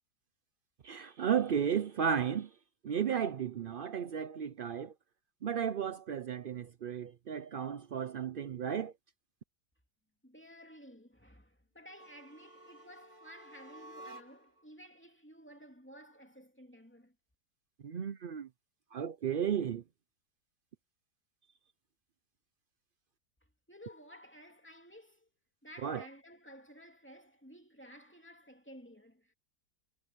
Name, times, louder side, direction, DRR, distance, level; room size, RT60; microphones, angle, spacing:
voice 1, 0.8-2.5 2.8-4.9 5.4-8.9 17.8-18.5 18.9-19.8 25.8-26.0, right 8 dB, 75° right, 0.4 m, -34 dB
voice 2, 10.2-17.1 23.7-25.3 25.6-29.3, equal, 5° left, 2.6 m, -54 dB
sound 1, 11.9-14.6, right 1 dB, 25° right, 1.9 m, -53 dB
omnidirectional pair, 1.8 m